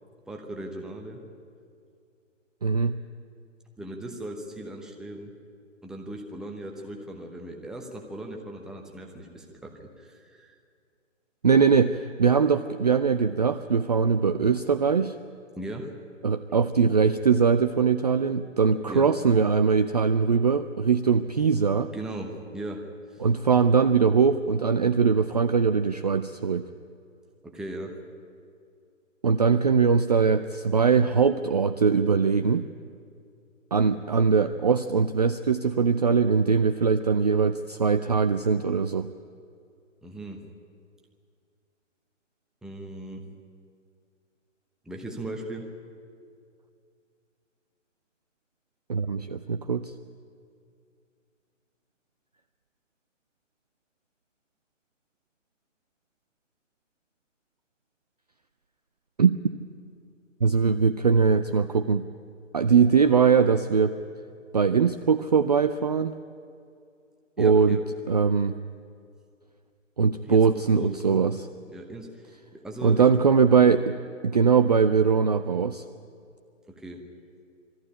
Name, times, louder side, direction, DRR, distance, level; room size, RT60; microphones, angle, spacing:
voice 1, 0.3-1.2 3.8-5.3 5.8-10.5 15.6-15.9 18.8-19.2 21.9-22.9 23.1-23.2 27.4-28.0 40.0-40.5 42.6-43.3 44.9-45.7 67.4-67.8 70.2-71.2 71.7-72.1 72.5-73.1 76.7-77.1, right 1 dB, ahead, 1 dB, 0.9 m, -38 dB
voice 2, 2.6-3.0 11.4-15.1 16.2-21.9 23.2-26.6 29.2-32.7 33.7-39.1 48.9-49.9 59.2-59.3 60.4-62.0 62.5-64.0 64.5-66.1 67.4-67.8 68.1-68.5 70.0-71.5 72.8-73.9 74.2-75.8, right 5 dB, 35° right, 9 dB, 0.4 m, -21 dB
21.5 x 14.5 x 10.0 m, 2.3 s
figure-of-eight pair, 135°, 38 cm